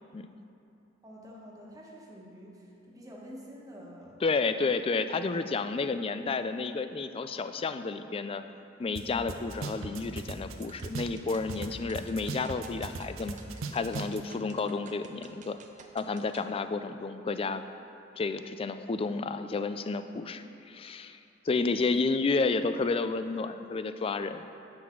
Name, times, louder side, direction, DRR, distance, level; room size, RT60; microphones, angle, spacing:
voice 1, 1.0-4.4 21.8-22.0, equal, 20° right, -3 dB, 1.4 m, -48 dB
voice 2, 4.2-8.4 8.8-13.4 13.7-15.6 15.9-17.6 18.2-21.2 21.5-24.5, left 4 dB, 30° left, 10 dB, 0.3 m, -31 dB
sound 1, 9.0-9.1 9.3-11.7 12.0-14.2, right 3 dB, 85° right, 0.7 m, -37 dB
sound 2, 10.6-16.5, right 5 dB, 40° right, 0.6 m, -54 dB
9.2 x 6.2 x 5.9 m, 2.7 s
head